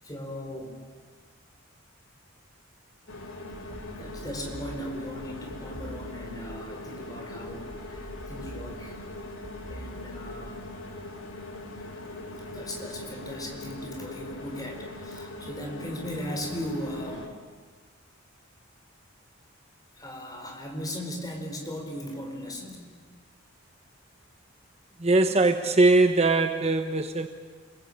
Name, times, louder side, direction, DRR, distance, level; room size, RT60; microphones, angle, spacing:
voice 1, 0.0-0.8 3.7-9.0 9.6-10.6 12.1-17.3 19.9-22.8, equal, 20° left, 2 dB, 4.6 m, -38 dB
sound 1, 3.1-17.3, left 2 dB, 70° left, 3.0 m, -41 dB
sound 2, 3.5-6.8 7.5-10.8, right 1 dB, 85° right, 1.9 m, -45 dB
voice 2, 25.0-27.3, right 2 dB, 30° right, 7 dB, 1.0 m, -21 dB
29.0 x 22.0 x 8.8 m, 1.5 s
head